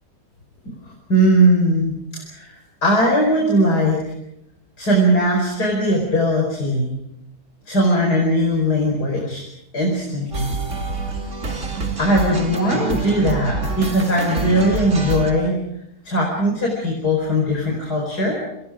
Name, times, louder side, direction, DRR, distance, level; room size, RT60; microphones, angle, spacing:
voice 1, 1.1-1.9 2.3-2.5 2.8-4.0 4.8-6.9 7.7-9.4 9.7-10.5 12.0-15.6 16.1-18.4, equal, 85° left, 0 dB, 5.5 m, -19 dB
Mi Amore, 10.3-15.3, right 3 dB, 50° right, 3.2 m, -27 dB
30.0 x 26.5 x 5.0 m, 0.81 s
omnidirectional pair, 1.7 m